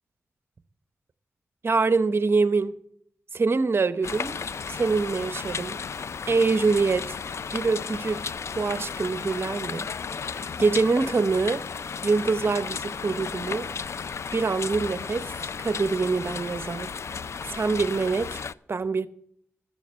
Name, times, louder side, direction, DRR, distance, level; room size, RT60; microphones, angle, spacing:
voice 1, 1.6-2.8 3.3-4.4 4.7-5.8 6.3-7.2 7.5-9.9 10.4-11.6 12.0-13.7 14.3-15.3 15.6-16.9 17.5-18.4 18.7-19.1, right 4 dB, 50° right, 0.8 m, -25 dB
sound 1, 4.0-18.5, left 6 dB, 65° left, 0.4 m, -34 dB
12.5 x 7.6 x 6.3 m
cardioid pair, 50°, 5 cm